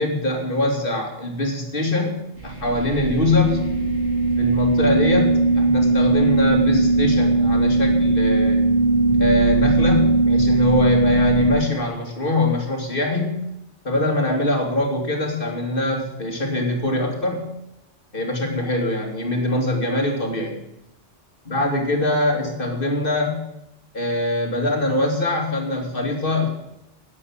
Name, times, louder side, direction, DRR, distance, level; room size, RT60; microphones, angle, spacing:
voice 1, 0.0-3.7 4.4-8.6 9.2-13.4 13.8-17.5 18.1-20.6 21.4-23.4 23.9-26.5, left 2 dB, 45° left, 2 dB, 2.8 m, -23 dB
sound 1, 2.4-11.5, right 2 dB, 65° right, 4.5 m, -19 dB
11.0 x 9.8 x 7.2 m, 0.88 s
omnidirectional pair, 1.3 m